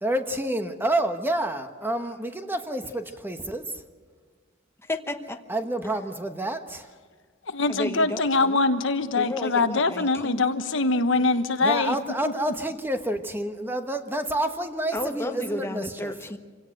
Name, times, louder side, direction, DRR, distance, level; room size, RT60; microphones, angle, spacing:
voice 1, 0.0-3.8 5.5-6.9 11.6-16.1, right 1 dB, 10° right, 7 dB, 1.2 m, -29 dB
voice 2, 4.8-5.4 7.7-8.6 9.2-10.4 14.9-16.4, left 1 dB, 15° left, 6 dB, 1.0 m, -32 dB
voice 3, 7.5-11.9 12.2-12.3, left 3 dB, 70° left, 9 dB, 1.2 m, -23 dB
26.5 x 17.0 x 7.8 m, 1.5 s
head